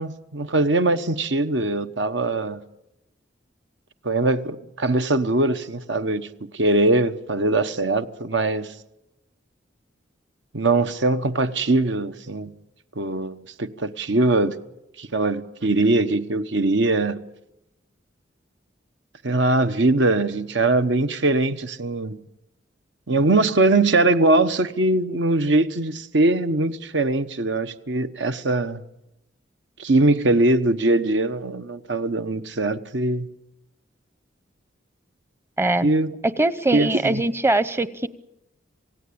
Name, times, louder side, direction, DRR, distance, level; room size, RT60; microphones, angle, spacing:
voice 1, 0.0-2.6 4.0-6.3 6.5-8.7 10.5-12.5 13.0-14.6 15.0-17.2 19.2-22.2 23.1-28.8 29.8-33.3 35.8-36.1 36.7-37.2, right 2 dB, 75° right, 1.1 m, -21 dB
voice 2, 35.6-35.9 36.2-38.1, right 2 dB, 15° right, 0.8 m, -22 dB
27.5 x 17.0 x 8.7 m
head